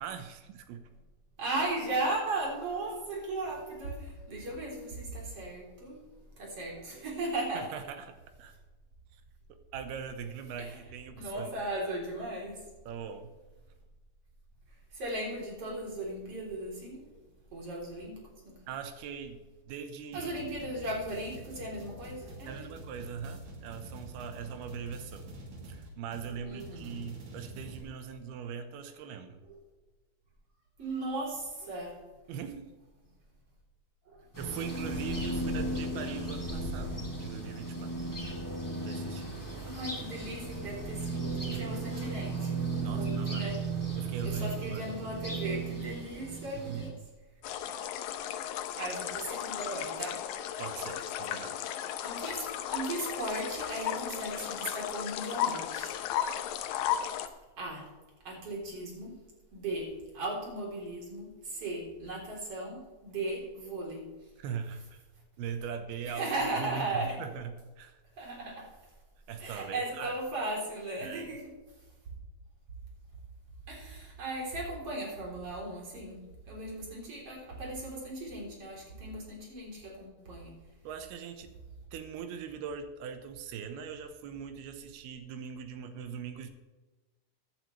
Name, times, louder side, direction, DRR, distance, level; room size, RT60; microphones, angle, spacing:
voice 1, 0.0-0.9 7.5-8.5 9.1-9.2 9.7-11.7 12.9-13.4 18.7-20.3 22.5-25.3 25.6-29.4 32.3-32.7 34.4-38.0 38.8-39.3 41.5-41.8 42.8-43.7 44.0-44.9 46.7-47.0 50.6-51.6 64.4-65.0 65.4-66.3 66.6-68.0 69.3-70.2 71.0-71.3 80.8-81.6 81.9-86.5, right 7 dB, 85° right, 7 dB, 3.0 m, -41 dB
voice 2, 1.4-6.0 6.4-7.7 10.6-10.7 11.1-12.6 14.9-17.0 17.5-18.7 20.1-22.7 26.3-27.0 30.8-32.0 34.1-34.3 39.6-42.5 42.8-43.6 44.2-46.9 48.6-50.2 52.0-56.0 57.6-57.9 58.2-59.2 59.5-64.1 66.0-67.2 68.2-68.8 69.4-71.5 73.7-80.6, right 2 dB, 40° right, -2 dB, 4.2 m, -37 dB
sound 1, 20.1-27.8, right 1 dB, 60° right, 3.8 m, -47 dB
sound 2, 34.3-46.9, right 3 dB, 5° left, 1.8 m, -35 dB
sound 3, 47.4-57.3, left 10 dB, 90° left, 1.7 m, -35 dB
16.0 x 11.0 x 3.3 m, 1.2 s
omnidirectional pair, 4.5 m